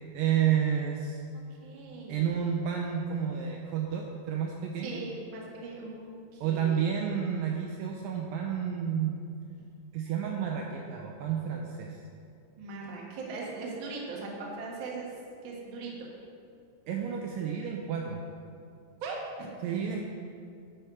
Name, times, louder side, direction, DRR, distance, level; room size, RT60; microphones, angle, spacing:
voice 1, 0.1-1.2 2.1-5.0 6.4-9.2 9.9-12.0 16.9-18.2 19.6-20.0, right 8 dB, 80° right, 1 dB, 2.0 m, -30 dB
voice 2, 1.6-2.3 4.8-6.8 12.6-15.1 15.4-16.1 19.0-19.5, right 3 dB, 65° right, -3 dB, 1.2 m, -39 dB
9.9 x 4.5 x 5.8 m, 2.4 s
omnidirectional pair, 4.5 m